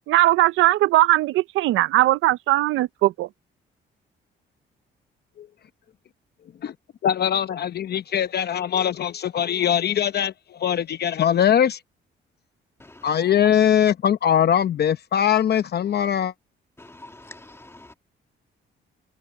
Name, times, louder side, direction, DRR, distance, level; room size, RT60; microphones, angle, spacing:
voice 1, 0.1-3.3, right 16 dB, 90° right, 0.7 m, -19 dB
voice 2, 7.0-11.8 13.0-16.3, left 9 dB, 55° left, 0.8 m, -21 dB
voice 3, 16.8-17.9, left 2 dB, 10° left, 1.7 m, -45 dB
cardioid pair, 90°, 20 cm